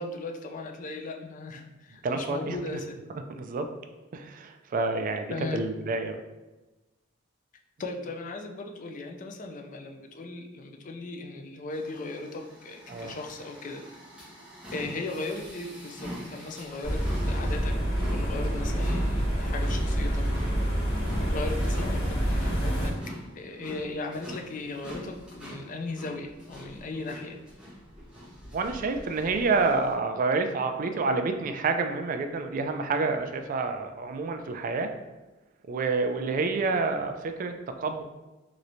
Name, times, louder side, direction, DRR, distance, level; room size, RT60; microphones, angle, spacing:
voice 1, 0.0-3.0 5.3-5.7 7.8-13.8 14.7-17.8 18.1-20.3 21.3-22.9 23.3-27.4, left 2 dB, 40° left, 3 dB, 0.4 m, -37 dB
voice 2, 2.0-2.8 3.1-3.7 4.1-6.2 12.9-13.1 28.5-34.9 35.7-38.0, right 3 dB, 45° right, 6 dB, 0.3 m, -28 dB
sound 1, 11.7-29.9, equal, 5° right, 0.8 m, -44 dB
sound 2, 16.8-22.9, equal, 60° left, 1.4 m, -27 dB
3.1 x 3.0 x 2.6 m, 1.1 s
head